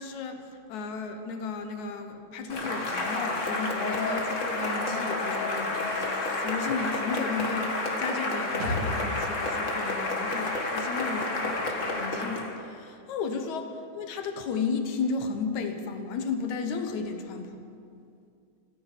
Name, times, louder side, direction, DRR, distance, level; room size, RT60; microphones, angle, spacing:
voice 1, 0.0-17.7, left 5 dB, 70° left, 6 dB, 2.4 m, -34 dB
Cheering / Applause, 2.5-12.5, left 2 dB, 35° left, 1.3 m, -30 dB
sound 1, 8.6-12.1 12.4-12.5, left 1 dB, 75° right, 3.5 m, -38 dB
16.5 x 9.9 x 8.3 m, 2.4 s
omnidirectional pair, 3.6 m